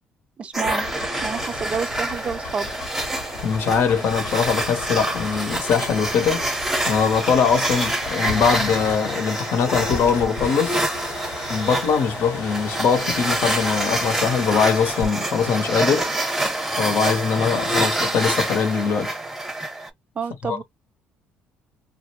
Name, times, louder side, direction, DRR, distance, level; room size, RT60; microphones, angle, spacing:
voice 1, 0.4-0.9 1.2-2.7 20.2-20.6, right 6 dB, 30° right, 0.4 m, -28 dB
sound 1, 0.5-19.9, right 1 dB, 5° right, 0.8 m, -26 dB
sound 2, 0.6-15.1, left 4 dB, 90° left, 1.0 m, -36 dB
voice 2, 3.4-6.4 6.8-10.8 11.5-16.1 16.8-19.1 20.4-20.6, left 6 dB, 60° left, 0.9 m, -22 dB
2.5 x 2.0 x 2.8 m
cardioid pair, 115°, 4 cm